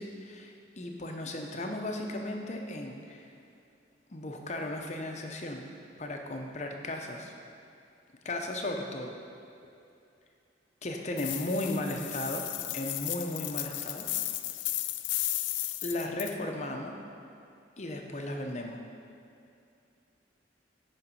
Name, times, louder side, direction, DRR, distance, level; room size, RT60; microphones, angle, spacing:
voice 1, 0.0-3.3 4.1-5.6 6.0-7.3 8.2-9.1 10.8-12.4 12.7-14.1 15.8-17.0 17.8-18.8, left 1 dB, 40° left, 2 dB, 0.7 m, -35 dB
sound 1, 11.2-16.3, left 15 dB, 80° left, 0.4 m, -34 dB
8.7 x 5.3 x 5.4 m, 2.6 s
head